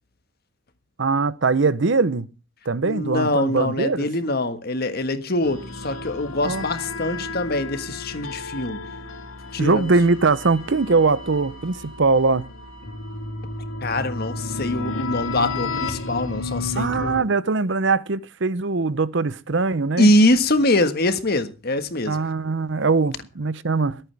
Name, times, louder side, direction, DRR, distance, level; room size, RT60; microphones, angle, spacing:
voice 1, 1.0-2.3 2.7-4.1 6.4-6.7 9.6-12.5 16.8-20.1 22.1-24.0, right 3 dB, 60° right, 0.8 m, -21 dB
voice 2, 2.8-8.8 9.5-9.9 13.8-17.2 20.0-22.2, left 1 dB, 50° left, 1.5 m, -23 dB
sound 1, 5.4-17.2, left 3 dB, 80° left, 3.1 m, -33 dB
22.5 x 8.9 x 3.4 m
head